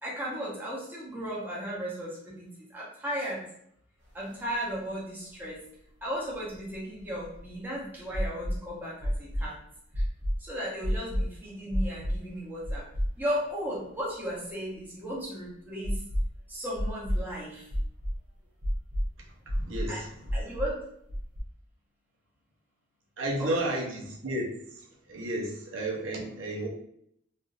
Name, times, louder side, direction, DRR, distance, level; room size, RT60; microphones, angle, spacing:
voice 1, 0.0-2.5 2.7-3.4 4.1-5.6 6.0-9.5 10.4-12.9 13.2-16.0 16.5-17.6 19.9-20.0 20.3-20.8 23.4-23.7, equal, 10° right, -6 dB, 0.9 m, -35 dB
sound 1, 4.3-4.4 4.7-4.8 6.3-7.5 8.1-8.6 9.0-9.5 9.9-10.4 10.8-11.3 11.7-12.2 12.6-13.4 13.7-13.8 15.8-16.4 16.8-17.2 17.7-18.2 18.6-19.1 19.5-19.9 20.3-20.7 21.1-21.4, equal, 65° right, 1.0 m, -29 dB
voice 2, 19.5-20.1 23.2-24.5 24.8-26.7, right 1 dB, 85° right, -2 dB, 0.9 m, -32 dB
3.5 x 2.6 x 2.5 m, 0.71 s
head